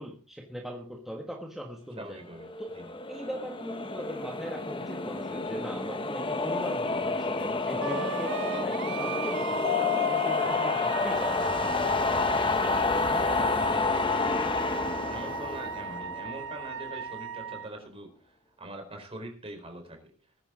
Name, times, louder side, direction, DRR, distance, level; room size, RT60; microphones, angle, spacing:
voice 1, 0.0-2.2 2.6-2.7 3.1-8.4 8.6-11.7, equal, ahead, 0 dB, 1.5 m, -40 dB
voice 2, 2.0-2.9 7.7-8.1 10.4-10.6 13.1-20.1, right 1 dB, 25° right, 4 dB, 4.4 m, -43 dB
sound 1, 2.4-16.7, left 3 dB, 25° left, 0.9 m, -29 dB
Wind instrument woodwind instrument, 7.8-17.7, right 7 dB, 55° right, 0.6 m, -37 dB
Mallet percussion, 9.6-12.2, left 16 dB, 70° left, 1.2 m, -33 dB
20.0 x 10.5 x 3.8 m, 0.39 s
head